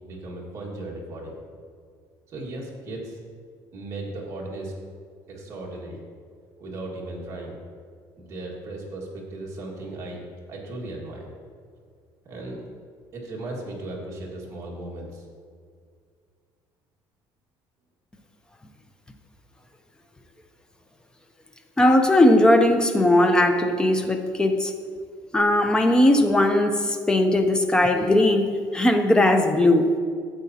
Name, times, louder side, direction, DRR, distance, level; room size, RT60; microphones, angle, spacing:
voice 1, 0.0-1.4 2.3-3.2 3.7-4.7 5.3-6.0 6.6-7.6 8.2-10.2 10.5-11.3 12.3-12.6 13.1-15.3, right 2 dB, 35° right, -3 dB, 1.8 m, -36 dB
voice 2, 21.8-24.7 25.3-29.9, left 1 dB, 10° left, 6 dB, 0.5 m, -19 dB
12.0 x 8.3 x 2.8 m, 2.1 s
cardioid pair, 170°, 9 cm